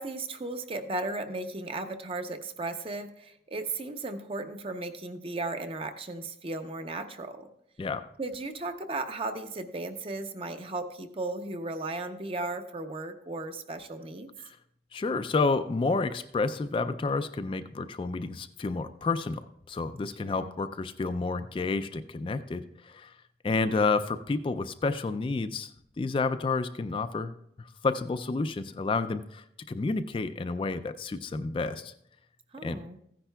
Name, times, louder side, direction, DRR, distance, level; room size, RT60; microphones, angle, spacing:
voice 1, 0.0-7.5 8.2-14.3 20.3-20.5 32.5-33.0, right 2 dB, 30° right, 8 dB, 0.6 m, -35 dB
voice 2, 14.9-19.4 19.7-23.1 23.4-25.7 26.0-31.9 32.6-32.8, left 3 dB, 30° left, 10 dB, 0.3 m, -30 dB
15.0 x 10.0 x 2.3 m, 0.76 s
head